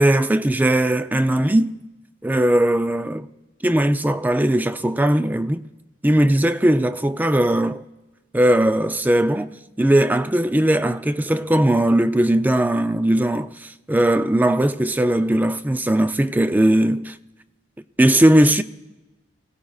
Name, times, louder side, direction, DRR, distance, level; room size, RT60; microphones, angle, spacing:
voice 1, 0.0-1.8 2.2-3.3 3.6-5.7 6.0-7.8 8.3-17.2 18.0-18.6, right 1 dB, 10° right, 0.4 m, -19 dB
24.5 x 16.5 x 2.4 m
head